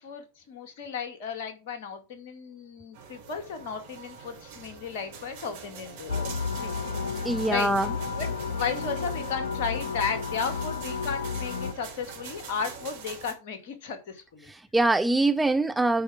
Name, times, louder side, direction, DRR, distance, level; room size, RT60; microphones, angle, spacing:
voice 1, 0.0-6.4 6.6-6.9 7.5-7.7 8.2-14.5, left 6 dB, 50° left, 2.2 m, -34 dB
sound 1, 2.9-13.3, right 5 dB, 50° right, 3.1 m, -43 dB
sound 2, 6.1-11.7, left 5 dB, 70° left, 0.8 m, -32 dB
voice 2, 7.2-7.9 14.5-16.0, right 2 dB, 5° right, 0.5 m, -24 dB
9.3 x 4.8 x 6.2 m
figure-of-eight pair, 90°, 0 cm